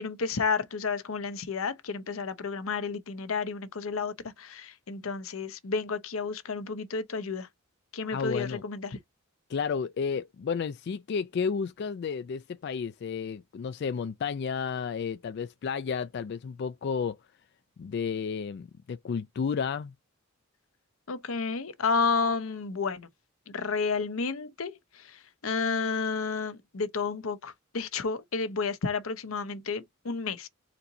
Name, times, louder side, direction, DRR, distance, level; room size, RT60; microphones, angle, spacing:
voice 1, 0.0-7.5 7.9-9.0 21.1-23.1 23.5-30.5, left 4 dB, 85° left, 0.8 m, -31 dB
voice 2, 8.1-8.6 9.5-17.2 17.8-19.9, left 6 dB, 55° left, 0.3 m, -32 dB
4.3 x 2.6 x 3.9 m
head